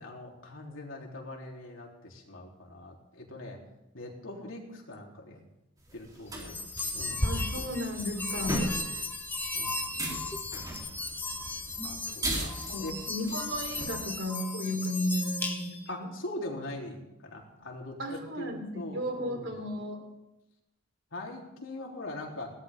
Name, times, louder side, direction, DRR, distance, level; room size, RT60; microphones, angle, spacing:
voice 1, 0.0-3.6 3.9-5.4 5.9-6.5 6.9-7.2 7.5-7.7 8.3-8.5 8.8-8.9 9.5-9.8 10.5-10.6 11.8-12.6 12.8-13.0 15.9-19.6 21.1-22.5, left 1 dB, 85° left, -1 dB, 3.8 m, -42 dB
sound 1, 5.8-14.1, right 1 dB, 20° right, 3.7 m, -39 dB
sound 2, 6.4-15.9, left 2 dB, 10° left, 1.4 m, -35 dB
voice 2, 7.2-8.7 12.7-16.1 18.0-20.0, equal, 70° right, 2 dB, 4.0 m, -34 dB
20.5 x 18.0 x 3.8 m, 0.92 s
head